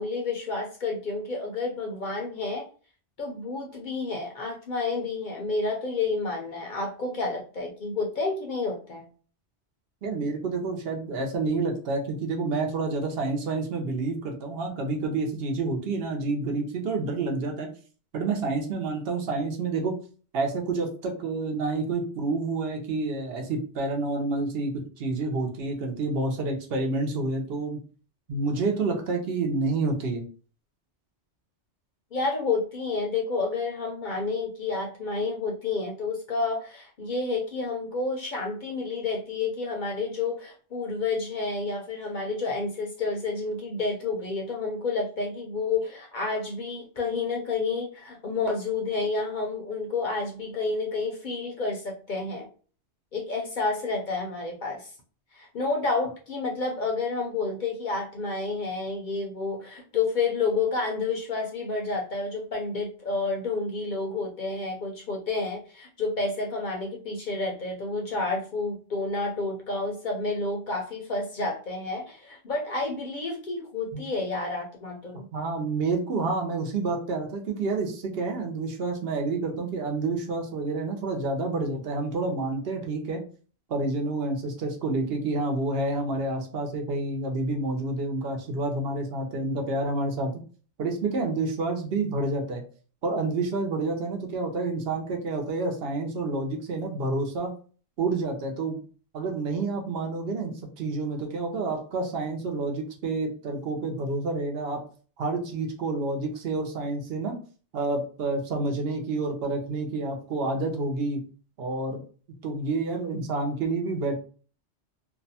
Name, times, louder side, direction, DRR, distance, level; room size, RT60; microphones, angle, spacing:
voice 1, 0.0-2.7 3.2-9.1 32.1-52.5 53.1-54.9 55.3-75.3, left 3 dB, 55° left, 0 dB, 0.6 m, -30 dB
voice 2, 10.0-17.7 18.1-19.9 20.3-27.8 28.3-30.2 73.9-74.0 75.3-83.2 83.7-90.3 90.8-92.6 93.0-97.5 98.0-98.8 99.1-104.8 105.2-107.4 107.7-111.2 111.6-112.0 112.4-114.1, right 3 dB, 65° right, 2 dB, 0.8 m, -29 dB
2.6 x 2.1 x 2.7 m, 0.39 s
omnidirectional pair, 1.1 m